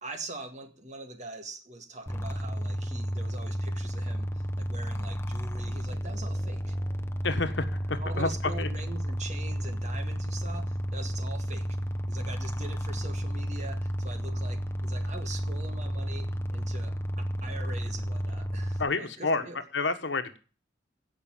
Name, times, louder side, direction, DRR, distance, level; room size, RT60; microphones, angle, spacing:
voice 1, 0.0-6.8 8.0-11.7 12.1-19.6, right 2 dB, 40° right, 6 dB, 1.8 m, -43 dB
sound 1, 2.1-18.8, equal, 15° left, 0.8 m, -32 dB
voice 2, 7.2-8.3 8.6-8.7 18.8-19.4 19.7-20.4, left 3 dB, 70° left, 8 dB, 1.3 m, -29 dB
16.5 x 5.7 x 7.2 m, 0.37 s
head